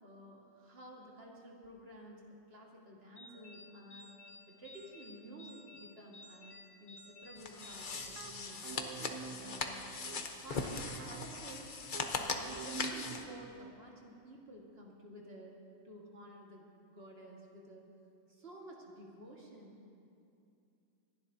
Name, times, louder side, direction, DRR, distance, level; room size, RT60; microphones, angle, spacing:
voice 1, 0.0-4.1 4.5-8.8 9.3-11.7 12.2-15.6 15.8-17.9 18.3-19.9, right 1 dB, 35° right, -2 dB, 1.9 m, -53 dB
sound 1, 3.2-8.9, left 2 dB, 75° left, 2.4 m, -56 dB
sound 2, 7.4-13.2, left 4 dB, 55° left, 0.5 m, -40 dB
sound 3, 7.9-13.7, right 7 dB, 75° right, 0.8 m, -48 dB
27.5 x 11.5 x 2.7 m, 2.6 s
omnidirectional pair, 2.0 m